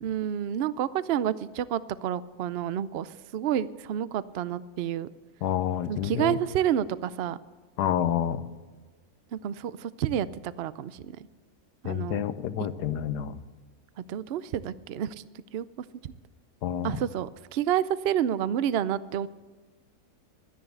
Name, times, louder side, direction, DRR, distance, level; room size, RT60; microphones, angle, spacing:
voice 1, 0.0-5.1 5.9-7.4 9.3-11.3 11.8-12.2 14.0-15.3 15.5-15.7 16.0-16.1 16.8-19.3, right 10 dB, 70° right, 16 dB, 0.6 m, -29 dB
voice 2, 5.4-6.4 7.8-8.4 11.8-13.4 16.6-17.0, left 10 dB, 85° left, 12 dB, 1.4 m, -28 dB
12.5 x 10.5 x 8.1 m, 1.3 s
omnidirectional pair, 1.7 m